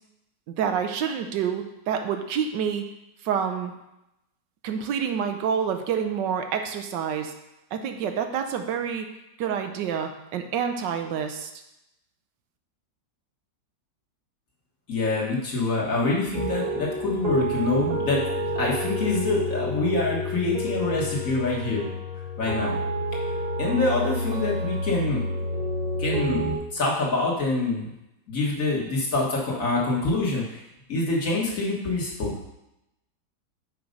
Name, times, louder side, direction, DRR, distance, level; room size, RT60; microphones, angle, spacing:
voice 1, 0.5-2.8 3.2-3.7 4.6-7.3 7.7-9.1 9.4-11.5, right 7 dB, 85° right, 6 dB, 1.4 m, -28 dB
voice 2, 14.9-18.2 18.5-21.9 22.4-22.8 23.6-25.2 26.0-27.9 28.3-30.6 30.9-32.5, left 3 dB, 50° left, -3 dB, 1.9 m, -26 dB
sound 1, 16.3-26.6, equal, 65° right, 2.0 m, -29 dB
6.6 x 4.7 x 5.2 m, 0.89 s
omnidirectional pair, 1.9 m